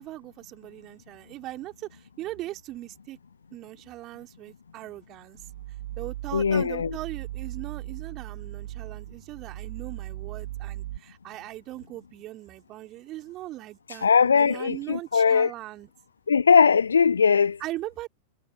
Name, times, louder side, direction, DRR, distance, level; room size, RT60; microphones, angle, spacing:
voice 1, 0.0-3.2 3.5-5.4 6.0-15.9 17.6-18.1, right 16 dB, 35° right, 3.1 m, -39 dB
sound 1, 5.3-11.0, right 15 dB, 55° right, 7.3 m, -38 dB
voice 2, 6.3-6.9 14.0-15.5 16.3-17.5, left 6 dB, 70° left, 0.5 m, -20 dB
figure-of-eight pair, 90°, 0 cm